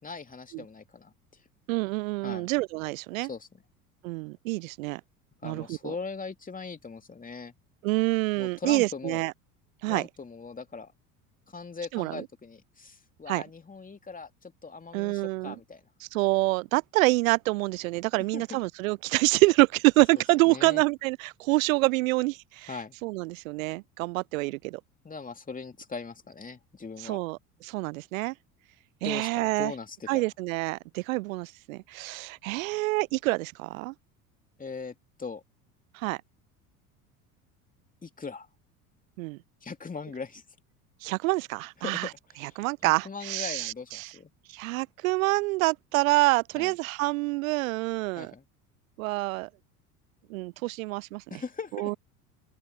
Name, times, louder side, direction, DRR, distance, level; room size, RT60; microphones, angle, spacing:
voice 1, 0.0-1.1 2.2-2.5 3.2-3.6 5.4-7.5 8.4-9.2 9.9-10.9 11.5-15.8 18.3-18.4 20.1-20.8 22.7-22.9 25.0-27.2 29.0-30.3 34.6-35.4 38.0-38.5 39.6-40.4 41.8-42.6 42.8-44.3 46.6-46.7 48.2-48.5 51.3-52.0, left 4 dB, 15° left, 2.9 m, -40 dB
voice 2, 1.7-3.3 4.0-5.0 5.4-5.9 7.8-9.3 9.8-10.0 11.9-12.2 13.3-13.4 14.9-15.5 16.0-22.8 23.0-24.8 27.0-28.3 29.0-29.7 30.1-33.9 35.9-36.2 39.2-39.4 41.0-42.1 42.4-44.1 44.5-48.3 49.0-49.5 50.3-51.2 51.7-52.0, right 23 dB, 60° right, 0.6 m, -27 dB
open air
figure-of-eight pair, 70°, 47 cm